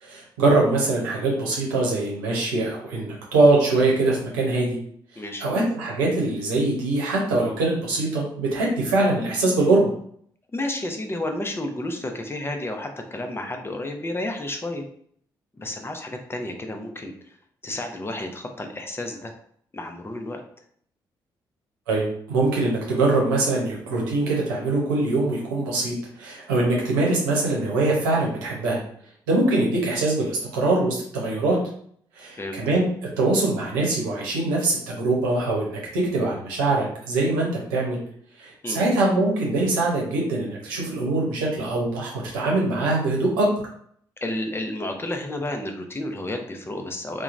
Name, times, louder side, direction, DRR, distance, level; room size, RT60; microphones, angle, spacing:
voice 1, 0.0-4.8 5.1-9.9 21.9-28.8 29.3-31.6 32.1-32.9 33.2-38.0 38.4-43.5, right 2 dB, 90° right, -3 dB, 0.8 m, -23 dB
voice 2, 10.5-14.8 15.6-17.4 17.6-19.3 19.7-20.4 32.3-32.6 38.6-38.8 44.2-47.2, left 1 dB, 25° left, 4 dB, 0.6 m, -31 dB
2.8 x 2.2 x 2.5 m, 0.62 s
hypercardioid pair, 45°, 10 cm